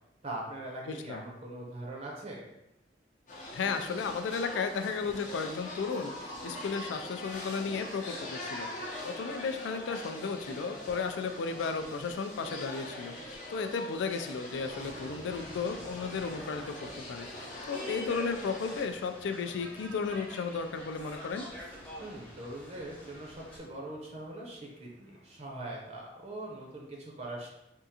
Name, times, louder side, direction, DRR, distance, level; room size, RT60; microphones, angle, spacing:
voice 1, 0.2-2.4 22.0-27.5, right 1 dB, 35° right, -2 dB, 0.6 m, -42 dB
voice 2, 0.9-1.2 3.5-21.5, left 5 dB, 85° left, 7 dB, 0.3 m, -34 dB
sound 1, 3.3-18.8, left 1 dB, 45° left, 0.6 m, -43 dB
sound 2, 14.5-25.7, right 1 dB, 80° right, 0.5 m, -54 dB
sound 3, 15.3-23.6, left 1 dB, 10° left, 0.7 m, -48 dB
3.6 x 2.4 x 2.7 m, 0.87 s
head